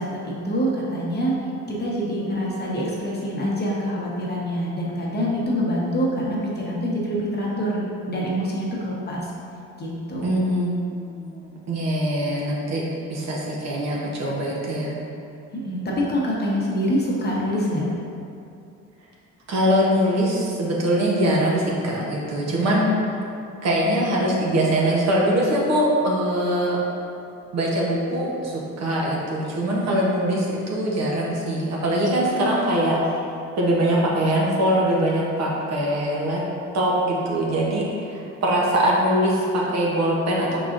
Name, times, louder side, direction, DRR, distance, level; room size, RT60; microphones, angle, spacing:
voice 1, 0.0-1.4 1.7-9.3 9.8-10.4 15.5-17.8, equal, 35° left, -4 dB, 1.0 m, -25 dB
voice 2, 10.2-12.8 13.1-14.9 19.5-23.0 23.6-26.8 27.5-33.1 33.6-36.4 36.7-40.6, right 1 dB, 60° right, -4 dB, 1.0 m, -22 dB
4.7 x 3.9 x 2.5 m, 2.5 s
cardioid pair, 90°, 30 cm